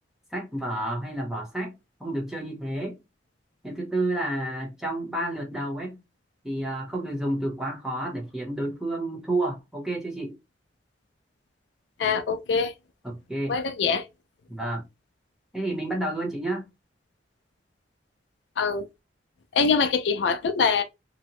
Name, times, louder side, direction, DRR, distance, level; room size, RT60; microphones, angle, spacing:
voice 1, 0.3-3.0 3.6-6.0 6.4-10.4 13.0-13.6 14.5-14.8 15.5-16.7, right 1 dB, 5° right, 0.8 m, -30 dB
voice 2, 12.0-12.7 13.5-14.0 18.6-18.8 19.5-20.8, left 5 dB, 75° left, 0.4 m, -23 dB
2.8 x 2.1 x 2.9 m
head